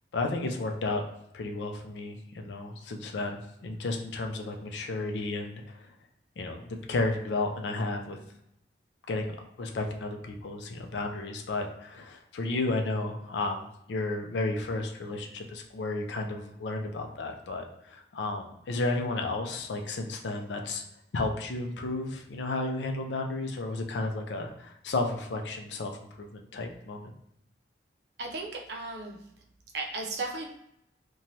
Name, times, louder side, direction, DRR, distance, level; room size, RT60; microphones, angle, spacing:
voice 1, 0.1-1.0 1.3-5.9 6.4-8.2 9.1-20.8 21.1-27.1, left 2 dB, 75° left, 3 dB, 0.4 m, -33 dB
voice 2, 28.2-29.2 29.7-30.5, right 3 dB, 65° right, 1 dB, 0.5 m, -35 dB
2.9 x 2.2 x 2.7 m, 0.79 s
head